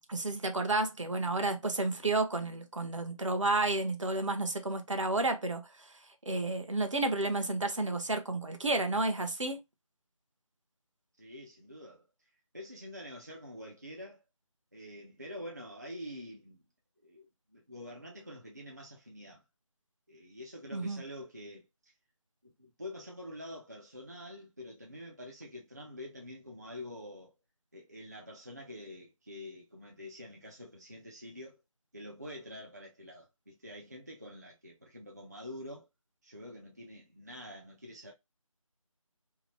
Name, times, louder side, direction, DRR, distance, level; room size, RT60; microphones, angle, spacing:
voice 1, 0.1-5.9 6.3-9.6 20.7-21.0, right 2 dB, 60° right, 0.7 m, -31 dB
voice 2, 11.2-12.1 12.5-14.2 14.7-16.6 17.0-19.4 20.1-21.9 22.4-27.3 27.7-31.6 31.9-35.9 36.2-38.1, left 1 dB, 30° right, 0.3 m, -46 dB
2.8 x 2.0 x 3.0 m
figure-of-eight pair, 165°, 18 cm